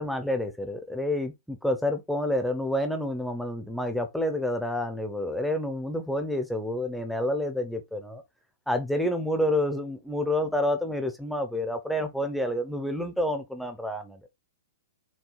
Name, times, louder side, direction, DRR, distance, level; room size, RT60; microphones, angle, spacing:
voice 1, 0.0-8.2 8.7-14.2, left 1 dB, ahead, 0.9 m, -29 dB
6.3 x 3.1 x 4.7 m
hypercardioid pair, 170°, 0 cm